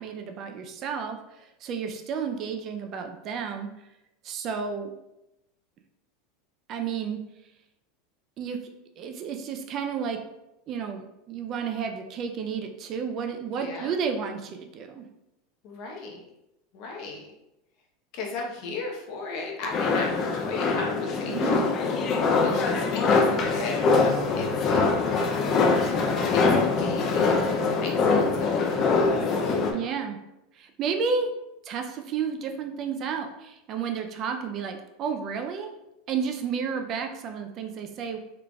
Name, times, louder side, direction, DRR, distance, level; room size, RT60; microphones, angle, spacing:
voice 1, 0.0-3.7 4.2-4.9 6.7-7.2 8.4-8.6 9.0-10.2 10.7-15.0 21.3-21.7 29.7-30.2 30.5-31.3 31.6-35.7 36.1-38.2, right 6 dB, 35° right, 5 dB, 0.3 m, -31 dB
voice 2, 13.6-14.0 15.6-16.2 16.7-17.2 18.1-21.8 22.4-25.2 26.3-29.1 29.4-29.9, left 3 dB, 50° left, 0 dB, 0.8 m, -36 dB
sound 1, 19.7-29.7, left 4 dB, 35° left, 0.4 m, -23 dB
3.8 x 3.3 x 2.3 m, 0.90 s
supercardioid pair, 150°, 0 cm